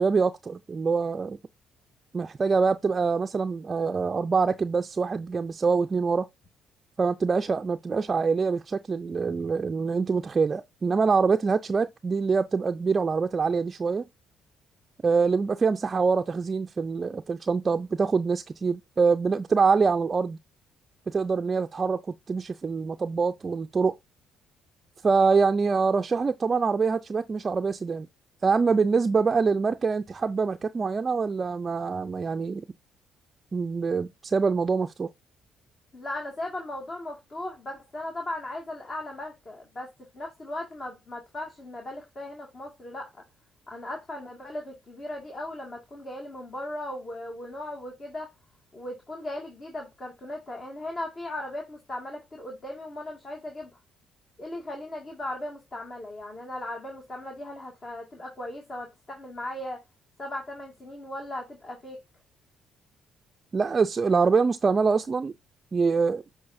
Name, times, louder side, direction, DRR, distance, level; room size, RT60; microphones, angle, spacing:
voice 1, 0.0-1.4 2.1-6.3 7.0-14.1 15.0-20.4 21.1-22.0 22.3-24.0 25.0-28.1 28.4-32.6 33.5-35.1 63.5-65.3 65.7-66.2, right 5 dB, 35° right, 0.4 m, -25 dB
voice 2, 35.9-43.2 43.7-48.3 48.7-53.7 54.4-59.8 60.2-62.0, left 1 dB, 40° left, 2.0 m, -37 dB
8.5 x 4.8 x 2.6 m
supercardioid pair, 75°, 0 cm